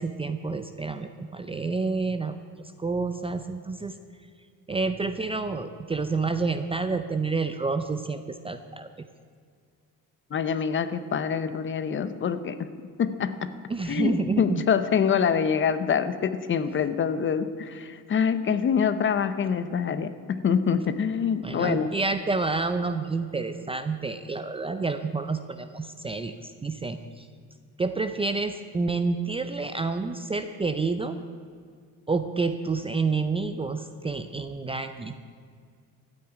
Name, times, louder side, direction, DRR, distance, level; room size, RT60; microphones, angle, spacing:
voice 1, 0.0-2.4 2.8-4.0 4.7-8.9 13.7-14.6 21.4-27.3 27.8-31.2 32.1-35.1, right 4 dB, 15° right, 9 dB, 0.5 m, -29 dB
voice 2, 10.3-12.7 13.0-13.5 13.9-21.9, left 7 dB, 30° left, 12 dB, 0.7 m, -25 dB
13.5 x 8.9 x 9.7 m, 2.1 s
cardioid pair, 160°, 37 cm